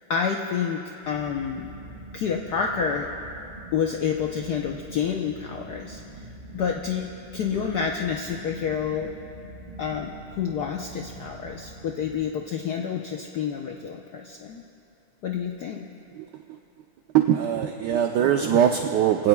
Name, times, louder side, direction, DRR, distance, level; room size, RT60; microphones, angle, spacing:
voice 1, 0.1-1.7 2.1-3.1 3.7-6.0 6.5-9.1 9.8-14.6 15.2-15.9, left 7 dB, 65° left, 1 dB, 1.1 m, -28 dB
sound 1, 1.0-12.2, right 2 dB, 30° right, 4.3 m, -44 dB
voice 2, 16.1-16.6 17.1-19.3, right 10 dB, 70° right, 4 dB, 1.0 m, -22 dB
24.5 x 17.0 x 2.3 m, 3.0 s
omnidirectional pair, 2.3 m